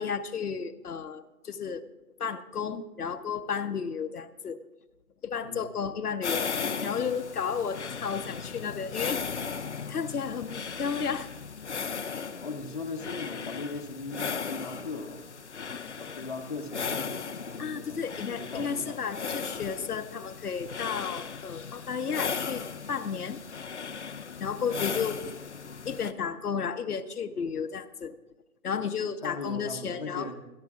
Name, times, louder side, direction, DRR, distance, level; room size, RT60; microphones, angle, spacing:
voice 1, 0.0-1.9 2.2-4.6 5.2-6.5 6.8-9.2 9.9-11.3 15.7-16.1 17.6-23.4 24.4-25.2 25.9-28.1 28.6-30.3, left 6 dB, 75° left, 8 dB, 0.9 m, -33 dB
voice 2, 5.4-5.7 12.4-15.4 16.0-19.1 29.2-30.3, left 3 dB, 35° left, 3 dB, 0.9 m, -39 dB
sound 1, 6.2-26.1, left 6 dB, 50° left, 0.5 m, -37 dB
25.5 x 12.0 x 2.4 m, 1.1 s
hypercardioid pair, 170°, 46 cm